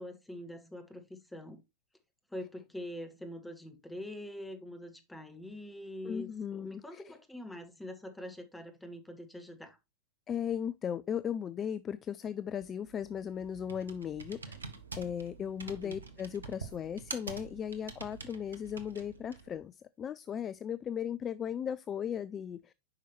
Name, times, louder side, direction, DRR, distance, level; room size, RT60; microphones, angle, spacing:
voice 1, 0.0-1.6 2.3-9.8 15.6-15.9, left 1 dB, 5° left, 1.5 m, -44 dB
voice 2, 6.0-7.1 10.3-14.6 14.9-22.7, left 8 dB, 25° left, 0.3 m, -37 dB
Computer keyboard, 12.6-19.6, right 4 dB, 75° right, 1.0 m, -47 dB
8.7 x 5.4 x 3.0 m
figure-of-eight pair, 90°, 0 cm